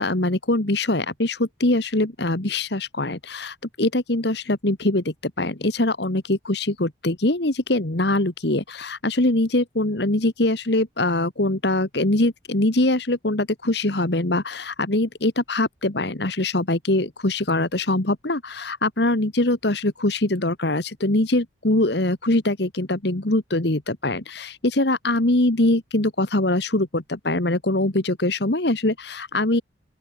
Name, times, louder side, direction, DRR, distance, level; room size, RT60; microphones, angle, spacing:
voice 1, 0.0-29.6, left 2 dB, 55° left, 1.7 m, -23 dB
open air
head